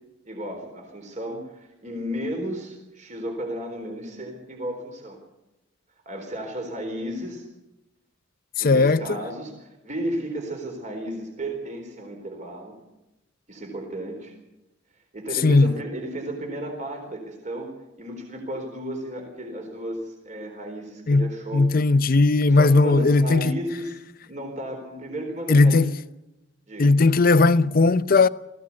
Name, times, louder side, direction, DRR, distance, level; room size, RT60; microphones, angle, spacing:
voice 1, 0.2-5.2 6.1-7.4 8.6-12.8 13.5-14.3 15.1-17.7 18.0-21.7 22.5-23.9 24.2-25.9 26.7-26.9, right 1 dB, 40° right, 4.0 m, -33 dB
voice 2, 8.6-9.2 15.4-15.7 21.1-23.6 25.5-25.9 26.8-28.3, left 3 dB, 45° left, 0.6 m, -18 dB
20.0 x 15.5 x 8.5 m
head